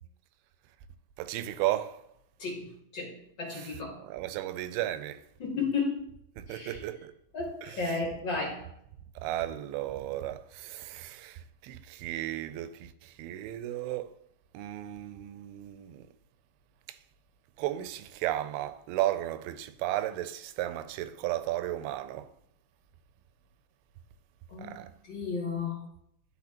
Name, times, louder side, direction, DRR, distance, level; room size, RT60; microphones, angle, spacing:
voice 1, 1.2-2.0 3.5-5.2 6.4-7.1 7.6-7.9 9.2-14.1 14.5-16.1 16.9-17.0 17.6-22.3 24.6-24.9, right 14 dB, 85° right, 2.5 m, -34 dB
voice 2, 2.4-4.0 5.4-6.0 6.5-6.8 7.3-8.7 24.5-24.7 25.0-25.9, left 4 dB, 55° left, 1.3 m, -33 dB
12.5 x 4.5 x 2.9 m
omnidirectional pair, 4.4 m